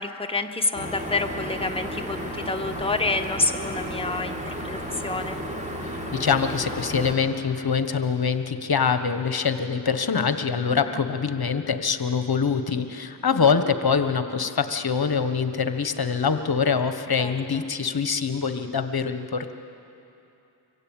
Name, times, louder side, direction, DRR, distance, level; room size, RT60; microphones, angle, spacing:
voice 1, 0.0-5.4 10.7-11.0 17.2-17.3, left 3 dB, 10° left, 5 dB, 1.4 m, -28 dB
sound 1, 0.7-7.1, equal, 15° right, 3.9 m, -33 dB
voice 2, 5.8-19.5, left 6 dB, 50° left, 9 dB, 1.4 m, -24 dB
25.0 x 15.5 x 9.0 m, 2.8 s
cardioid pair, 55°, 49 cm